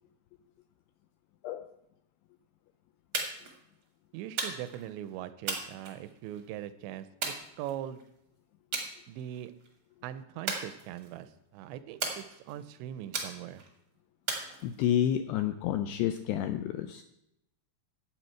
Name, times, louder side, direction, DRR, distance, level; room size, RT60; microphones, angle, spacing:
sound 1, 3.1-3.6 4.4-4.8 5.5-6.4 7.2-8.0 8.7-8.9 9.3-9.7 10.5-11.2 12.0-12.6 13.1-13.7 14.3-15.1, right 4 dB, 65° right, 1.2 m, -36 dB
voice 1, 4.1-7.1 7.6-8.0 9.1-9.5 10.0-13.6, right 11 dB, 85° right, 12 dB, 2.8 m, -41 dB
voice 2, 14.6-17.0, left 10 dB, 85° left, 8 dB, 2.3 m, -29 dB
12.0 x 8.5 x 4.5 m, 0.81 s
omnidirectional pair, 5.2 m